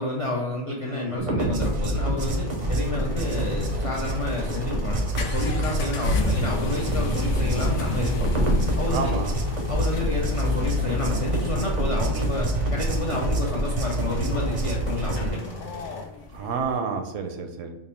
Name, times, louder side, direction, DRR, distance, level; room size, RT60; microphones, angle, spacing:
voice 1, 0.0-8.5 8.8-9.2 9.7-15.4, left 2 dB, 65° left, -2 dB, 0.3 m, -30 dB
voice 2, 0.8-1.1 3.2-3.4 8.9-9.4 16.3-17.7, right 5 dB, 85° right, 5 dB, 0.9 m, -30 dB
sound 1, 1.2-15.3, right 1 dB, 50° right, 0.5 m, -27 dB
sound 2, 2.1-16.0, left 1 dB, 30° left, 0.6 m, -42 dB
sound 3, 2.9-16.8, left 3 dB, 80° left, 0.9 m, -31 dB
3.4 x 2.0 x 4.2 m, 0.97 s
omnidirectional pair, 1.3 m